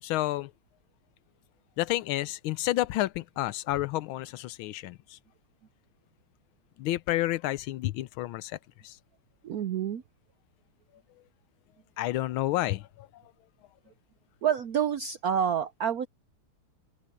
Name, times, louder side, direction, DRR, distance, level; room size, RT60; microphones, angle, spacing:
voice 1, 0.0-0.5 1.8-5.2 6.8-8.6 8.8-9.0 12.0-13.2, left 16 dB, 75° left, 1.4 m, -30 dB
voice 2, 9.4-10.0 14.4-16.1, right 8 dB, 70° right, 0.8 m, -28 dB
open air
omnidirectional pair, 2.3 m